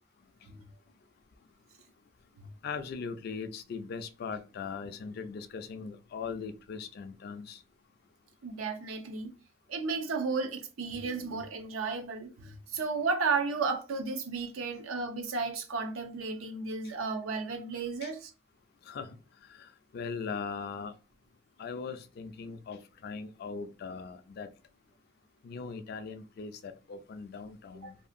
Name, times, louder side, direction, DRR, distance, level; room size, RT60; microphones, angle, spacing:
voice 1, 2.6-7.6 18.0-18.1 18.8-19.2 19.5-20.9 21.6-24.5 25.4-27.9, left 5 dB, 50° left, 0.3 m, -40 dB
voice 2, 8.4-9.3 9.7-18.3 27.8-27.9, right 4 dB, 85° right, 0.6 m, -33 dB
2.7 x 2.5 x 2.5 m
head